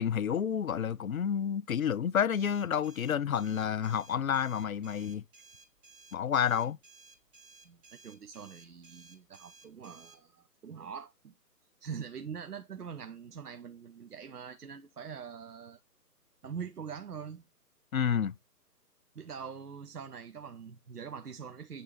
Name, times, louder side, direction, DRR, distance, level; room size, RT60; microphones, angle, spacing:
voice 1, 0.0-5.2 6.1-6.8 17.9-18.3, left 8 dB, 60° left, 0.5 m, -29 dB
sound 1, 2.3-10.2, right 4 dB, 20° right, 2.2 m, -57 dB
voice 2, 7.6-11.3 11.8-15.8 16.4-17.5 19.1-21.8, right 6 dB, 70° right, 0.8 m, -43 dB
10.0 x 3.7 x 4.3 m
figure-of-eight pair, 140°, 49 cm